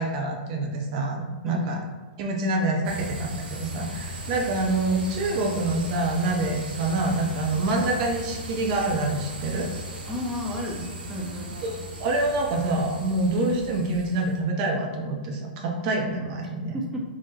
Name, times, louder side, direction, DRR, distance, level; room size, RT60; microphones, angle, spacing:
voice 1, 0.0-1.8 2.2-9.7 12.0-16.7, right 2 dB, 40° right, 0 dB, 0.6 m, -26 dB
voice 2, 1.5-1.8 10.1-11.6 16.7-17.0, equal, 5° right, -3 dB, 0.7 m, -32 dB
sound 1, 2.8-14.4, right 1 dB, 80° right, 1.0 m, -37 dB
3.8 x 2.1 x 4.0 m, 1.3 s
hypercardioid pair, 135°, 5 cm